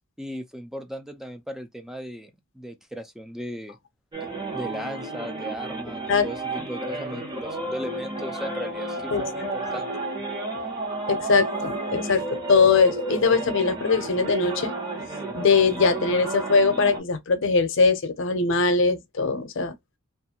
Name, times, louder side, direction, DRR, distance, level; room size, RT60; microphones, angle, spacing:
voice 1, 0.2-3.8 4.5-9.9, equal, ahead, 0.4 m, -37 dB
sound 1, 4.1-17.0, right 2 dB, 20° right, 0.8 m, -32 dB
voice 2, 11.1-14.7 15.3-19.7, left 4 dB, 60° left, 0.6 m, -21 dB
2.6 x 2.4 x 2.7 m
head